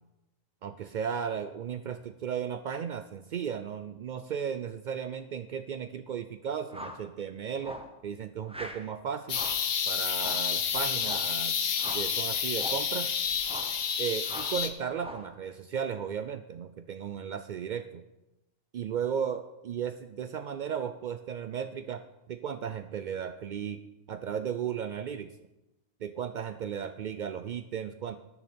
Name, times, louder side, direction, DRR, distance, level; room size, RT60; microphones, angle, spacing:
voice 1, 0.6-9.4 9.9-11.6 11.9-13.1 14.0-18.0 18.7-22.0 22.3-23.8 24.1-25.3 26.0-28.2, right 8 dB, 80° right, 10 dB, 0.4 m, -35 dB
sound 1, 6.7-7.1 7.6-7.9 8.5-8.9 9.3-9.7 10.1-10.5 11.0-11.3 11.8-12.1 12.5-12.9 13.4-13.8 14.2-14.6 15.0-15.3, equal, 5° right, 0.7 m, -42 dB
sound 2, 9.3-14.7, left 7 dB, 75° left, 1.3 m, -30 dB
19.0 x 6.6 x 4.3 m, 0.97 s
omnidirectional pair, 1.4 m